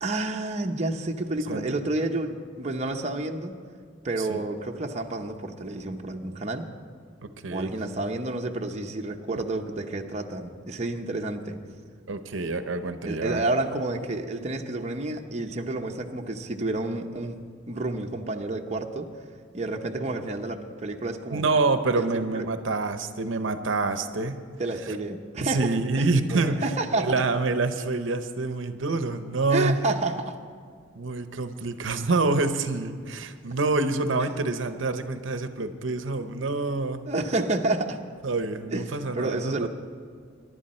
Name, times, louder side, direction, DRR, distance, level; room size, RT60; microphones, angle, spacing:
voice 1, 0.0-3.6 4.0-6.7 7.5-11.6 13.0-17.4 17.7-19.1 19.5-21.4 22.0-22.1 22.3-22.5 24.6-27.2 29.5-30.4 37.1-38.0 38.7-38.8 39.1-39.7, right 2 dB, 35° right, 2 dB, 0.8 m, -30 dB
voice 2, 7.2-7.7 12.1-13.4 21.3-24.4 25.4-26.6 26.9-29.8 31.0-37.0 38.2-39.7, right 3 dB, 80° right, 9 dB, 0.8 m, -27 dB
23.0 x 11.5 x 4.3 m, 2.1 s
head